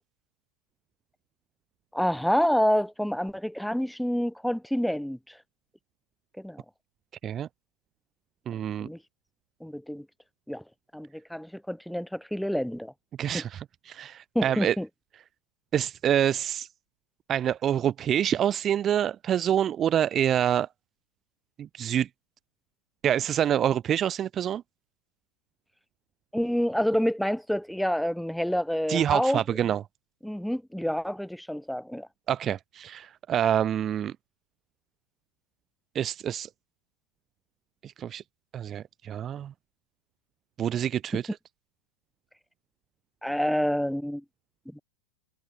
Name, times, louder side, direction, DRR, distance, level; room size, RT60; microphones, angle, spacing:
voice 1, 1.9-5.4 6.4-6.6 8.8-9.0 9.6-10.0 10.5-10.6 10.9-12.9 13.3-13.4 14.3-14.9 26.3-29.4 30.2-32.1 41.1-41.2 43.2-44.2 44.7-44.8, equal, ahead, 0.9 m, -28 dB
voice 2, 8.5-8.9 13.2-14.8 15.7-16.7 17.3-20.7 21.6-22.1 23.0-24.6 28.9-29.8 32.3-34.1 35.9-36.5 37.8-38.2 38.5-39.5 40.6-41.4, right 10 dB, 25° right, 0.4 m, -26 dB
figure-of-eight pair, 90°, 0 cm